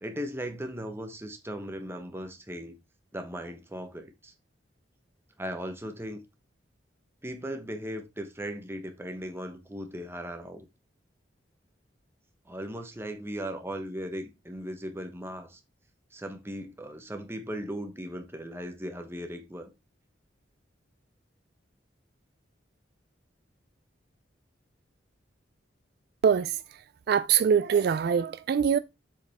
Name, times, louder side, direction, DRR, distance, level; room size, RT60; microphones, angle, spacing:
voice 1, 0.0-2.8 3.1-4.3 5.4-6.2 7.2-10.6 12.5-15.6 16.1-19.7, equal, 15° right, 1.1 m, -37 dB
voice 2, 26.2-26.6 27.1-28.8, right 7 dB, 55° right, 0.3 m, -23 dB
7.5 x 5.2 x 3.5 m
head